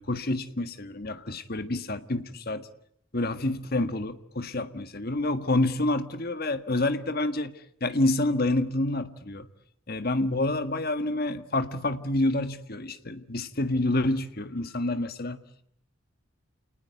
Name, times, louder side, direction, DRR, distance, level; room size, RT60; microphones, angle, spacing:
voice 1, 0.0-2.7 3.1-7.5 7.8-9.5 9.9-15.4, left 2 dB, 45° left, 1.6 m, -28 dB
28.5 x 19.5 x 9.5 m
head